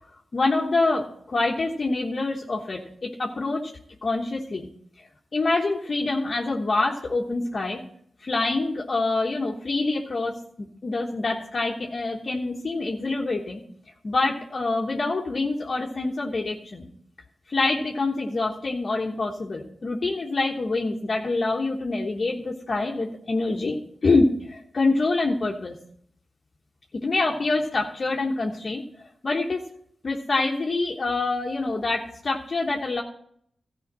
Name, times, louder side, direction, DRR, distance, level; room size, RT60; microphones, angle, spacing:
voice 1, 0.3-3.6 4.0-4.7 5.3-7.8 8.2-13.6 14.0-16.9 17.5-25.7 27.0-28.8 29.2-29.6 30.0-33.0, left 3 dB, 55° left, 0 dB, 1.2 m, -26 dB
13.0 x 5.0 x 7.5 m, 0.65 s
cardioid pair, 50°, 0 cm